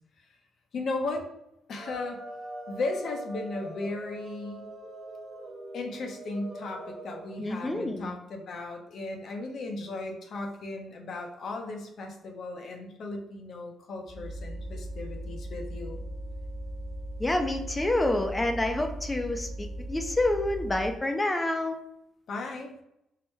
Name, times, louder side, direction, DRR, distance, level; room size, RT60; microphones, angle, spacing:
voice 1, 0.7-1.3 1.7-2.2 2.7-4.7 5.7-16.0 22.3-22.8, left 2 dB, 60° left, 2 dB, 0.6 m, -36 dB
sound 1, 1.8-7.4, right 1 dB, 45° right, 1.1 m, -42 dB
voice 2, 7.4-8.1 17.2-21.8, left 1 dB, 20° left, 5 dB, 0.4 m, -28 dB
sound 2, 14.1-21.0, right 1 dB, 15° right, 0.9 m, -38 dB
4.7 x 2.1 x 3.1 m, 0.80 s
cardioid pair, 90°, 0 cm